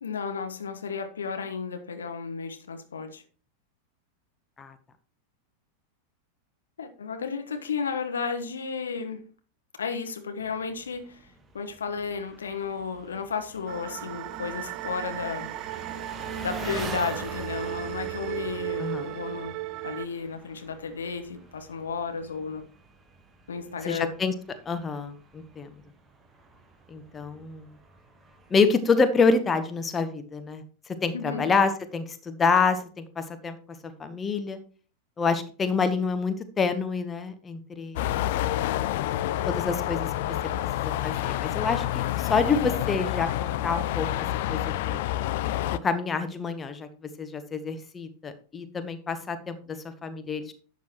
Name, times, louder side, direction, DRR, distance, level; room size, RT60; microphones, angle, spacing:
voice 1, 0.0-3.2 6.8-9.3 9.8-15.5 16.4-19.5 19.8-22.6 23.5-24.1 31.1-31.5, left 5 dB, 70° left, 1.2 m, -33 dB
Engine, 10.4-28.5, right 3 dB, 15° right, 1.4 m, -44 dB
sound 1, 13.7-20.1, right 17 dB, 40° right, 0.4 m, -36 dB
voice 2, 23.8-24.3 24.7-25.7 26.9-27.7 28.5-30.6 31.0-33.6 34.0-34.6 35.2-38.1 39.4-40.3 40.8-43.3 43.6-45.0 45.8-46.9 47.2-50.5, left 4 dB, 20° left, 1.0 m, -27 dB
sound 2, 38.0-45.8, left 13 dB, 50° left, 0.5 m, -28 dB
11.5 x 8.2 x 3.0 m
figure-of-eight pair, 90°, 0 cm